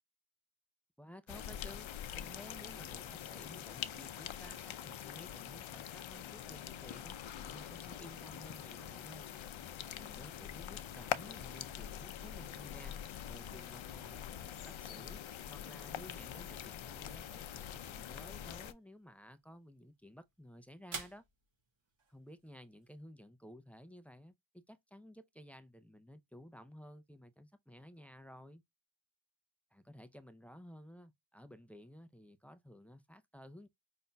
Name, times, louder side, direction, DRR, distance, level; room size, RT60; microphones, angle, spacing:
voice 1, 1.0-7.2 7.5-9.3 9.9-15.2 15.5-21.3 22.1-28.6 29.7-33.7, equal, 5° left, 0.4 m, -55 dB
sound 1, 1.3-18.7, left 10 dB, 75° left, 0.6 m, -44 dB
sound 2, 11.6-23.0, right 4 dB, 70° right, 2.1 m, -56 dB
5.2 x 4.1 x 2.2 m
wide cardioid pair, 135°, 48 cm